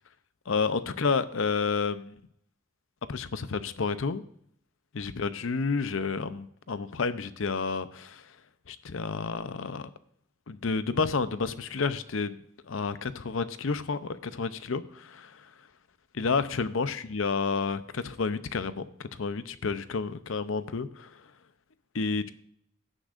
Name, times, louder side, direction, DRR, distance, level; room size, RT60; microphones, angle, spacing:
voice 1, 0.5-2.1 3.1-4.2 4.9-8.2 8.7-9.9 10.5-12.4 12.7-15.4 16.1-21.1 21.9-22.3, left 4 dB, 70° left, 13 dB, 0.6 m, -30 dB
16.0 x 9.9 x 2.5 m, 0.69 s
head